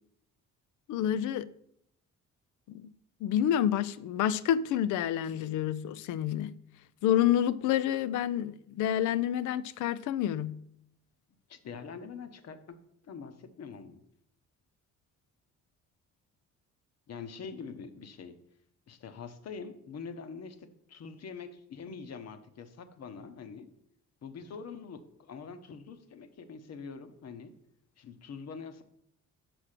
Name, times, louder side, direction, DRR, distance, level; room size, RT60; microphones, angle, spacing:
voice 1, 0.9-1.5 2.7-2.9 3.2-6.5 7.0-10.6, left 10 dB, 85° left, 0.5 m, -28 dB
voice 2, 11.5-12.8 13.0-14.0 17.1-18.4 18.9-23.7 24.2-27.5 28.0-28.8, left 5 dB, 55° left, 1.0 m, -44 dB
6.1 x 4.8 x 6.5 m
cardioid pair, 90°, 30 cm